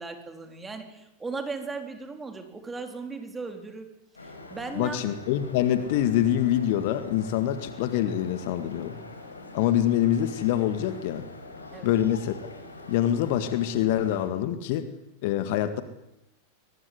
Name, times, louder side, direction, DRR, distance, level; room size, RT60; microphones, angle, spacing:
voice 1, 0.0-3.9 4.2-5.0 11.7-11.9, right 4 dB, 10° right, 5 dB, 4.3 m, -37 dB
sound 1, 4.1-14.3, left 2 dB, 75° left, 5.5 m, -44 dB
voice 2, 4.7-9.0 9.5-11.2 11.8-12.4 12.9-14.9 15.2-15.8, left 11 dB, 50° left, 11 dB, 1.9 m, -25 dB
23.0 x 20.5 x 9.8 m, 0.86 s
figure-of-eight pair, 90°, 0 cm